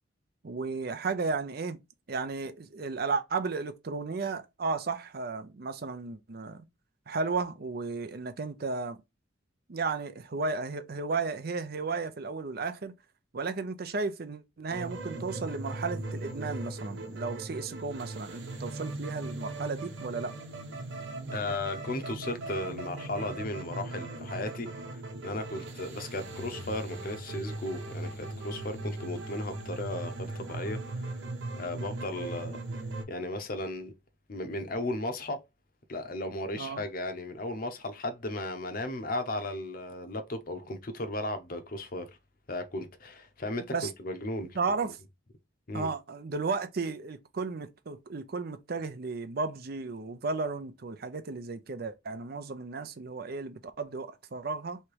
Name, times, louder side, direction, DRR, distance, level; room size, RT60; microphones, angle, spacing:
voice 1, 0.4-1.8 2.1-6.6 7.1-9.0 9.7-12.9 13.3-20.4 36.5-36.8 43.7-43.9 44.6-45.0 45.7-54.8, right 4 dB, 50° right, 0.5 m, -34 dB
sound 1, 14.7-33.0, right 2 dB, 70° right, 1.0 m, -39 dB
voice 2, 21.3-24.7 25.2-31.2 31.6-32.6 33.1-33.9 34.3-35.4 35.9-42.1 42.5-43.6 44.0-44.6 45.7-45.9, left 2 dB, 50° left, 0.8 m, -35 dB
3.3 x 2.9 x 4.6 m
head